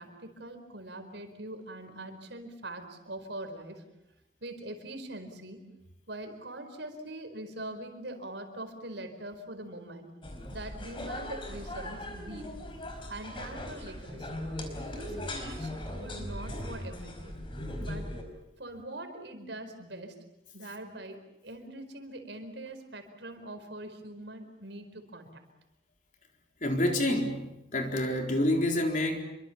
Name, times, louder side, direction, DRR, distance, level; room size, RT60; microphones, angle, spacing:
voice 1, 0.0-3.8 4.4-5.7 6.1-10.1 10.5-12.5 13.1-14.5 14.9-17.4 17.8-18.1 18.6-20.2 20.5-25.4, right 1 dB, 70° right, 7 dB, 4.6 m, -43 dB
sound 1, 10.2-18.2, left 1 dB, 25° left, 4.5 m, -39 dB
voice 2, 26.6-29.2, left 1 dB, 40° left, 3 dB, 4.1 m, -28 dB
29.0 x 24.0 x 7.2 m, 0.92 s
head